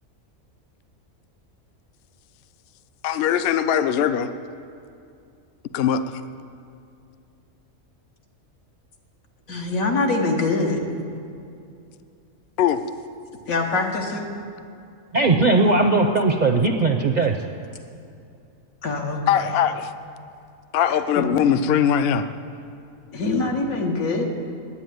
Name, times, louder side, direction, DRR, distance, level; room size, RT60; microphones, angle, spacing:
voice 1, 3.0-4.3 5.7-6.0 12.6-12.8 19.3-19.9 20.7-22.2, left 9 dB, 60° left, 11 dB, 0.7 m, -20 dB
voice 2, 9.5-10.8 13.5-14.3 18.8-19.5 21.2-21.3 23.1-24.2, left 3 dB, 85° left, 1 dB, 1.8 m, -24 dB
voice 3, 15.1-17.4, right 3 dB, 50° right, 4 dB, 0.5 m, -18 dB
9.9 x 8.8 x 9.2 m, 2.5 s
omnidirectional pair, 1.4 m